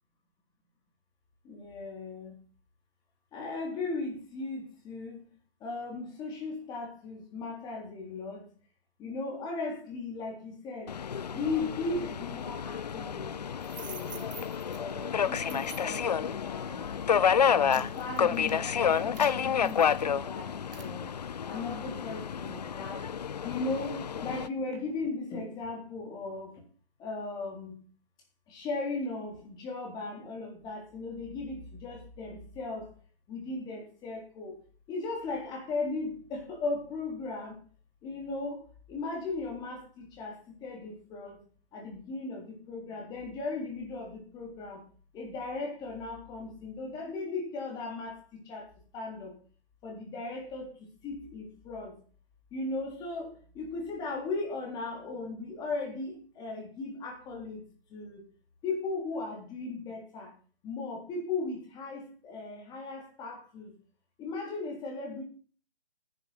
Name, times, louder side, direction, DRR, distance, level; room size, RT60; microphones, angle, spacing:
voice 1, 1.4-2.4 3.3-5.2 5.6-8.5 9.0-10.9 11.3-13.3 13.7-14.3 14.7-16.9 17.3-21.2 21.5-23.1 23.4-26.6 27.0-27.7 28.5-32.9 33.3-34.6 34.9-37.6 38.0-38.6 38.9-41.4 41.7-44.8 45.1-49.3 49.8-52.0 52.5-57.6 57.9-58.2 58.6-60.3 60.6-63.7 64.2-65.2, left 3 dB, 15° left, 1 dB, 3.6 m, -37 dB
Subway metro underground, 10.9-24.5, left 7 dB, 45° left, 0.5 m, -30 dB
sound 1, 13.6-14.8 15.3-16.1 16.7-17.0 17.4-20.3 20.7-20.9, right 5 dB, 65° right, 2.0 m, -47 dB
10.5 x 10.0 x 5.8 m, 0.40 s
figure-of-eight pair, 150°, 30 cm